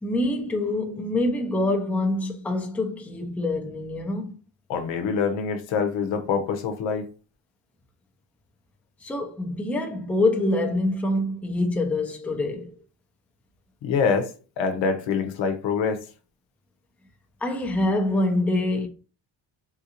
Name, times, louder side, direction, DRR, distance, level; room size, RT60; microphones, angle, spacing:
voice 1, 0.0-4.4 9.0-12.7 17.4-18.9, left 2 dB, 5° left, 0.5 m, -25 dB
voice 2, 4.7-7.1 13.8-16.0, left 5 dB, 75° left, 0.8 m, -25 dB
3.8 x 2.4 x 2.8 m
cardioid pair, 115°, 45 cm